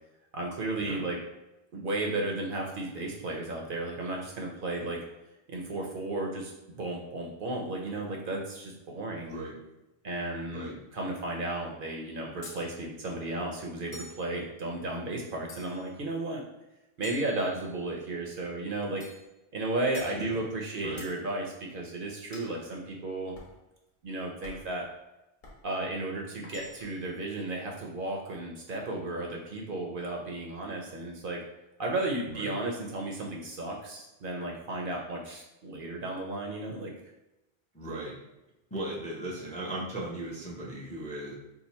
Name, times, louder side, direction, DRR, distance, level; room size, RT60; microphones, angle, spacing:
voice 1, 0.3-1.2 1.7-5.0 5.5-9.4 10.0-16.4 17.0-19.0 19.5-23.3 24.0-24.9 25.6-31.4 31.8-36.9, right 2 dB, 60° right, 0 dB, 0.7 m, -34 dB
voice 2, 9.2-9.6 10.5-10.7 20.3-20.4 20.8-21.0 32.3-32.5 37.7-38.1 38.7-41.3, right 1 dB, 10° left, -3 dB, 0.5 m, -37 dB
sound 1, 12.4-12.7 13.9-14.3 15.5-15.9 17.0-17.9 19.0-19.3 19.9-20.2 21.0-21.2 22.3-22.6 23.4-23.6 24.4-24.8 25.4-25.6 26.4-27.0, left 2 dB, 50° left, 0.9 m, -47 dB
2.7 x 2.4 x 4.1 m, 0.96 s
omnidirectional pair, 1.1 m